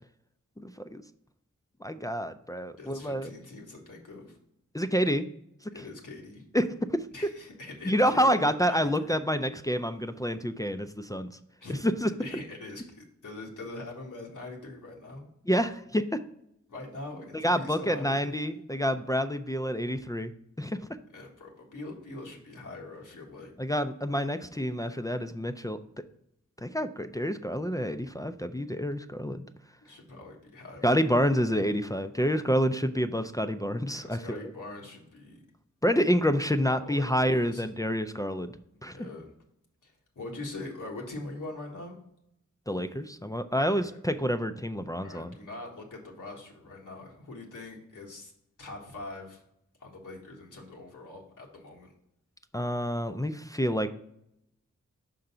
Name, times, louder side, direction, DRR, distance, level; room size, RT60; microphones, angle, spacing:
voice 1, 0.6-1.0 1.8-3.3 4.7-5.2 6.5-6.7 6.9-7.1 7.9-11.3 11.8-12.1 15.5-16.2 17.4-20.3 20.6-20.8 23.6-25.8 26.6-29.4 30.8-34.4 35.8-38.5 38.8-39.0 42.7-45.3 52.5-53.9, equal, 10° left, 8 dB, 0.3 m, -28 dB
voice 2, 2.8-4.4 5.7-6.4 7.1-9.2 11.6-11.8 12.2-15.3 16.7-18.4 21.1-23.5 29.8-31.0 33.9-35.4 36.6-37.6 38.9-39.3 39.8-42.0 43.6-44.0 45.0-48.3 48.6-49.4 49.8-51.9, left 2 dB, 85° left, -1 dB, 1.5 m, -43 dB
5.8 x 3.8 x 5.4 m, 0.78 s
wide cardioid pair, 85°, 31 cm